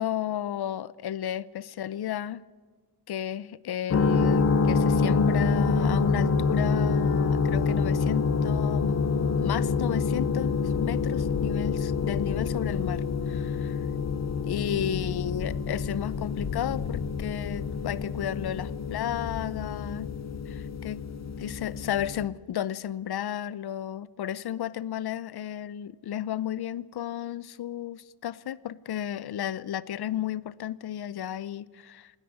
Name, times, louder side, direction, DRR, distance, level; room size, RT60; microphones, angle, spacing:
voice 1, 0.0-2.4 3.1-9.0 9.4-13.7 14.5-20.1 20.5-21.0 21.4-32.1, left 10 dB, 80° left, 0.7 m, -33 dB
sound 1, 3.9-22.3, left 4 dB, 45° left, 0.9 m, -27 dB
27.5 x 10.0 x 9.4 m
wide cardioid pair, 165°, 38 cm